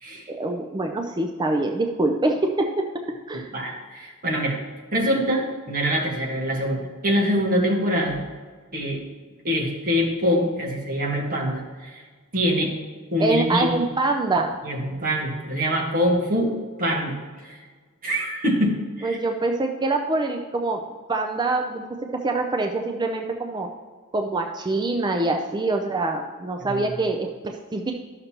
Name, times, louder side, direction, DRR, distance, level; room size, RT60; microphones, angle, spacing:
voice 1, 0.3-2.9 3.3-3.5 13.2-14.5 19.0-20.8 21.1-21.8 22.1-23.7 24.1-27.9, right 2 dB, 20° right, 3 dB, 0.4 m, -25 dB
voice 2, 3.3-4.6 4.9-8.2 8.7-9.0 9.4-12.0 12.3-12.7 13.1-13.8 14.6-16.5 16.8-17.2 17.4-17.6 18.0-19.2 26.6-26.8, equal, 40° right, -1 dB, 1.6 m, -24 dB
11.5 x 6.6 x 2.9 m, 1.5 s
head